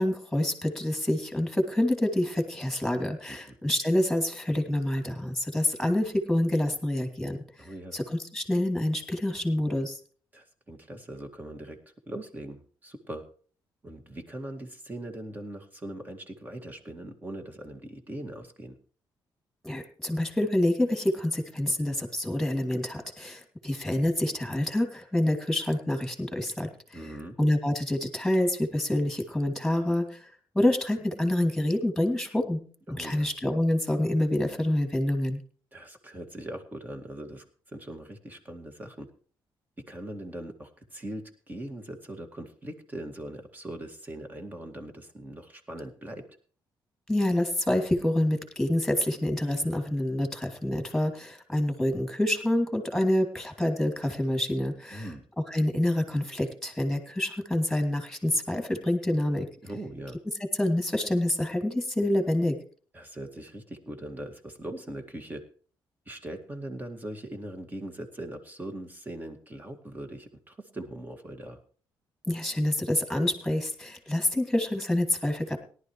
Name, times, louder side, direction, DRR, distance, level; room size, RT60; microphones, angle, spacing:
voice 1, 0.0-10.0 19.6-27.0 27.4-30.3 30.5-32.6 32.9-35.4 47.1-55.1 55.5-59.5 60.6-62.6 72.3-75.6, left 1 dB, 5° left, 4 dB, 2.6 m, -27 dB
voice 2, 7.6-8.0 10.3-11.8 12.1-13.2 13.8-18.8 26.9-27.3 32.9-33.3 35.7-37.4 37.7-39.1 39.9-46.3 54.9-55.3 59.6-60.2 62.9-65.4 66.1-71.6, right 1 dB, 20° right, 5 dB, 2.1 m, -40 dB
18.0 x 11.5 x 3.2 m, 0.43 s
cardioid pair, 110°, 8 cm